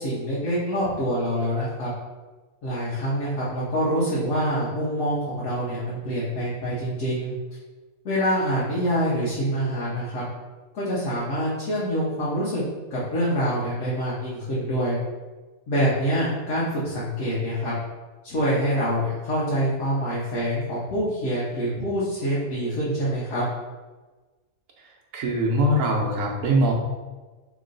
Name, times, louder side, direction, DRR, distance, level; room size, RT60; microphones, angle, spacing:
voice 1, 0.0-1.9 2.6-7.3 8.0-10.2 10.7-12.6 12.9-15.0 15.7-17.7 18.2-23.5, equal, 65° left, -8 dB, 1.3 m, -25 dB
voice 2, 25.1-26.7, right 1 dB, 65° right, -1 dB, 1.1 m, -22 dB
3.1 x 3.0 x 3.8 m, 1.3 s
omnidirectional pair, 1.5 m